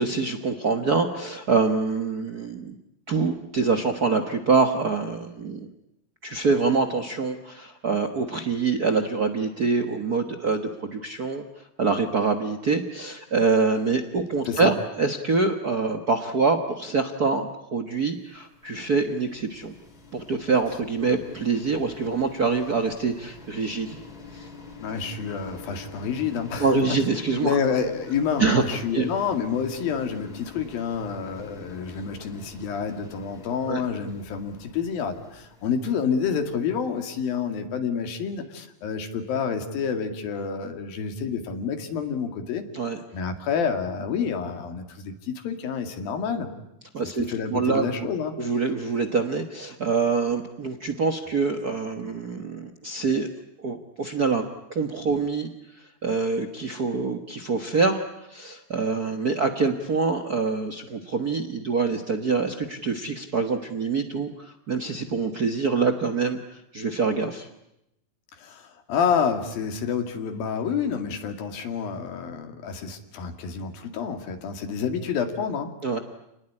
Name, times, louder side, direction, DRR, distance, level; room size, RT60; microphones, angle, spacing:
voice 1, 0.0-2.7 3.1-5.7 6.2-11.4 11.8-19.7 20.1-24.0 24.3-24.5 26.6-27.5 28.4-28.6 28.9-29.1 33.7-33.8 42.7-43.0 46.9-47.2 47.5-47.9 48.4-53.3 53.6-54.4 54.7-55.5 56.0-58.0 58.3-66.4 66.7-67.5 75.8-76.0, right 4 dB, 75° right, 6 dB, 0.8 m, -25 dB
sound 1, 18.3-37.3, left 3 dB, 25° left, 3.8 m, -45 dB
voice 2, 24.8-27.0 27.4-42.6 43.1-46.5 47.2-48.5 68.4-75.7, left 6 dB, 85° left, 6 dB, 4.1 m, -28 dB
29.5 x 20.0 x 9.9 m, 0.84 s
omnidirectional pair, 4.0 m